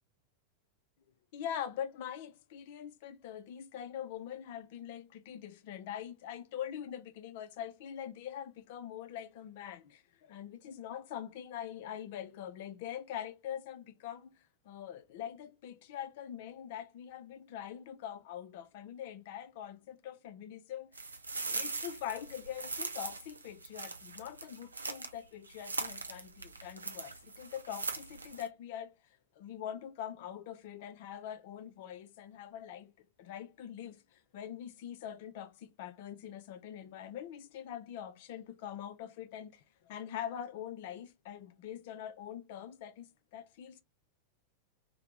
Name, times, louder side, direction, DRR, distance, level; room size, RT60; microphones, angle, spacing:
voice 1, 1.3-10.0 10.3-14.3 14.6-21.1 21.5-28.9 29.4-32.9 33.2-43.8, left 10 dB, 50° left, 0.4 m, -43 dB
sound 1, 20.9-25.2 25.5-28.5, right 3 dB, 75° right, 0.5 m, -41 dB
2.8 x 2.1 x 3.1 m
figure-of-eight pair, 90°, 0 cm